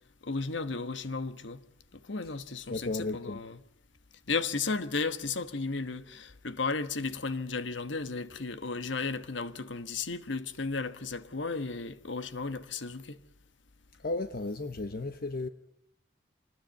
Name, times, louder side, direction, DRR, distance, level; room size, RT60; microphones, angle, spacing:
voice 1, 0.2-1.6 1.9-3.6 4.3-13.2, left 4 dB, 70° left, 1.3 m, -34 dB
voice 2, 2.7-3.4 14.0-15.5, left 2 dB, 50° left, 1.0 m, -34 dB
25.5 x 20.0 x 9.3 m
head